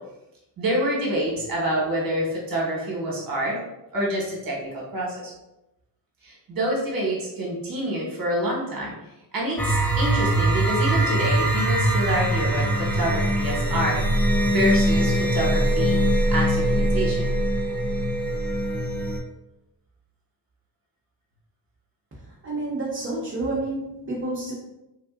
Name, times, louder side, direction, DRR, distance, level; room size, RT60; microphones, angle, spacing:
voice 1, 0.6-3.6 3.9-5.3 6.2-8.9 9.3-14.0 14.5-15.9 16.3-17.3, right 1 dB, 50° right, -4 dB, 1.2 m, -27 dB
sound 1, 9.6-19.2, right 1 dB, 5° left, 0.4 m, -22 dB
voice 2, 22.4-24.5, right 2 dB, 30° right, -7 dB, 0.8 m, -29 dB
3.5 x 2.5 x 2.4 m, 0.92 s
cardioid pair, 95°, 43 cm